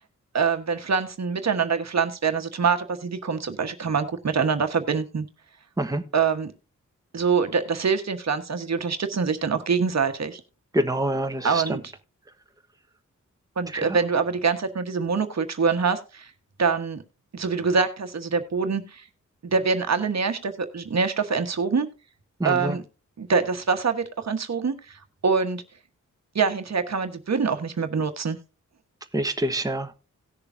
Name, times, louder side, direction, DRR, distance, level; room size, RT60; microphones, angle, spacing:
voice 1, 0.3-5.3 6.1-6.5 7.1-10.4 11.4-11.9 13.6-16.3 16.6-17.0 17.3-19.0 19.4-21.9 22.4-22.8 23.2-25.6 26.3-28.4, right 5 dB, 60° right, 1.3 m, -25 dB
voice 2, 10.7-11.6 13.7-13.9 22.4-22.8 29.1-29.9, right 1 dB, 10° right, 1.2 m, -26 dB
18.0 x 6.8 x 2.7 m
wide cardioid pair, 75°, 31 cm